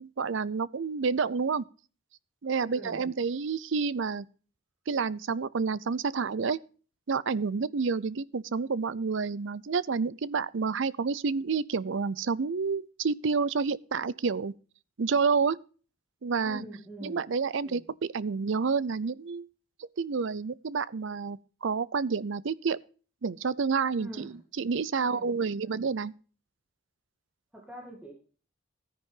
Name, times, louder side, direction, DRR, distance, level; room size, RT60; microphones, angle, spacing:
voice 1, 0.0-1.6 2.4-4.2 4.9-6.6 7.1-14.5 15.0-15.6 16.2-16.6 17.0-19.5 20.0-22.8 23.2-26.1, right 5 dB, 65° right, 0.5 m, -29 dB
voice 2, 2.6-3.0 16.4-17.2 17.6-17.8 24.0-24.4 25.0-25.3 25.6-25.9 27.5-28.1, right 1 dB, 5° right, 2.3 m, -44 dB
13.5 x 10.0 x 3.8 m
head